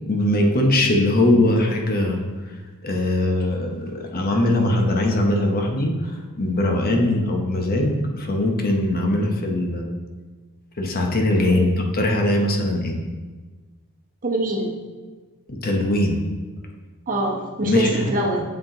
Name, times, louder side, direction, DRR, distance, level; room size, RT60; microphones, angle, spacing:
voice 1, 0.1-2.6 2.8-9.8 10.8-13.0 15.5-16.2 17.6-18.1, left 1 dB, 40° left, 2 dB, 0.8 m, -21 dB
voice 2, 14.2-14.7 17.1-18.4, right 2 dB, 40° right, 0 dB, 1.0 m, -24 dB
7.5 x 5.2 x 3.8 m, 1.3 s
head